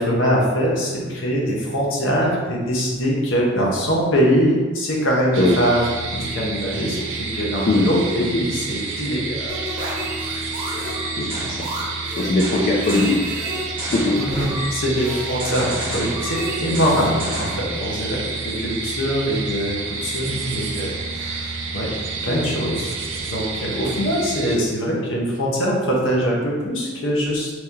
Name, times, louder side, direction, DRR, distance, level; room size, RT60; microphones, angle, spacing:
voice 1, 0.0-9.6 14.2-21.9 22.2-23.0 23.3-27.5, equal, 70° left, -3 dB, 0.8 m, -22 dB
sound 1, 5.3-24.6, right 4 dB, 65° right, 0.4 m, -29 dB
voice 2, 7.7-8.4 11.2-11.7 12.2-13.4 13.9-14.2 22.3-22.6, left 2 dB, 40° left, -2 dB, 0.3 m, -21 dB
sound 2, 9.5-17.7, right 1 dB, 25° right, 1.1 m, -30 dB
3.0 x 2.7 x 3.6 m, 1.4 s
head